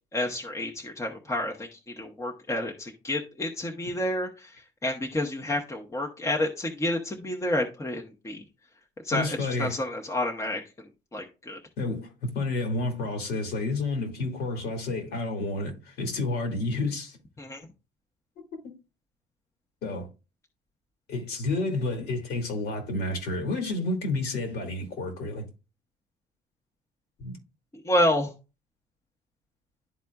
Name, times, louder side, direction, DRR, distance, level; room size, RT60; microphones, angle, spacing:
voice 1, 0.1-8.4 9.0-11.6 17.4-17.6 27.8-28.3, left 1 dB, 15° left, 1.0 m, -29 dB
voice 2, 9.1-9.8 11.8-17.2 18.6-18.7 19.8-20.1 21.1-25.4 27.2-27.4, left 2 dB, 75° left, 2.2 m, -30 dB
11.5 x 4.1 x 2.3 m
cardioid pair, 110°, 17 cm